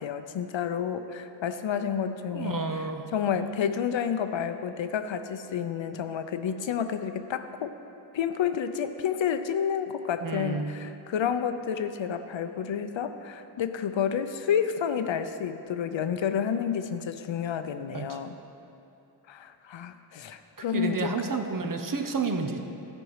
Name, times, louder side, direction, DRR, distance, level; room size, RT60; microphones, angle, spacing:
voice 1, 0.0-2.8 3.1-7.7 8.1-18.4 19.3-21.1, left 8 dB, 85° left, 9 dB, 0.6 m, -30 dB
voice 2, 2.3-3.0 10.2-10.8 17.9-18.2 20.7-22.6, right 4 dB, 45° right, 5 dB, 0.7 m, -30 dB
13.5 x 5.3 x 4.7 m, 2.8 s
wide cardioid pair, 85°, 44 cm